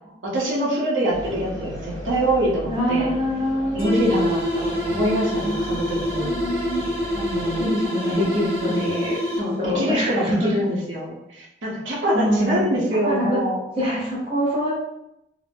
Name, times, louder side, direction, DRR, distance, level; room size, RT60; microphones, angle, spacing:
voice 1, 0.2-3.1 3.7-6.3 7.1-8.3 9.4-13.6, right 1 dB, 90° right, -4 dB, 0.8 m, -25 dB
sound 1, 1.1-7.7, equal, 50° right, 1.5 m, -36 dB
voice 2, 2.7-3.9 5.3-5.8 6.2-7.1 7.4-9.2 9.6-10.5 12.1-12.6 13.0-13.4 13.8-14.7, equal, 30° right, -6 dB, 0.7 m, -25 dB
sound 2, 3.8-9.7, equal, 10° right, 1.2 m, -26 dB
2.5 x 2.0 x 3.4 m, 0.87 s
head